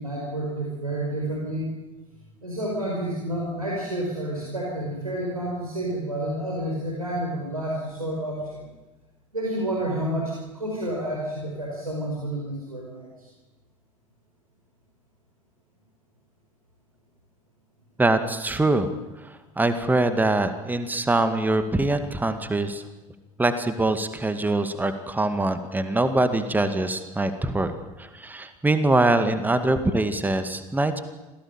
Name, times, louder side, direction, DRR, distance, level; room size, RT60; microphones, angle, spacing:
voice 1, 0.0-1.7 2.4-8.6 9.3-13.3, right 1 dB, 85° right, -2 dB, 4.7 m, -30 dB
voice 2, 18.0-18.9 19.2-22.8 23.4-27.7 28.0-31.0, right 2 dB, 10° right, 9 dB, 2.2 m, -23 dB
26.5 x 17.5 x 9.0 m, 1.1 s
figure-of-eight pair, 70°, 18 cm